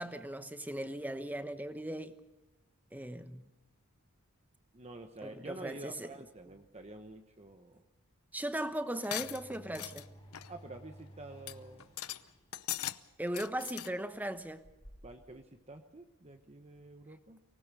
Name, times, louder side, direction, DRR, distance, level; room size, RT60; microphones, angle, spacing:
voice 1, 0.0-2.2 2.9-3.5 5.2-6.1 8.3-10.0 13.2-14.6, right 1 dB, 10° right, 1.1 m, -38 dB
voice 2, 4.7-7.8 10.5-11.9 15.0-17.4, right 2 dB, 30° right, 1.1 m, -48 dB
sound 1, 9.0-10.1 10.3-10.6 11.0-11.1 11.5-11.6 11.8-12.2 12.5-13.0 13.3-13.9, left 13 dB, 75° left, 0.8 m, -39 dB
sound 2, 9.1-15.4, equal, 25° left, 3.4 m, -56 dB
24.5 x 19.5 x 6.9 m
head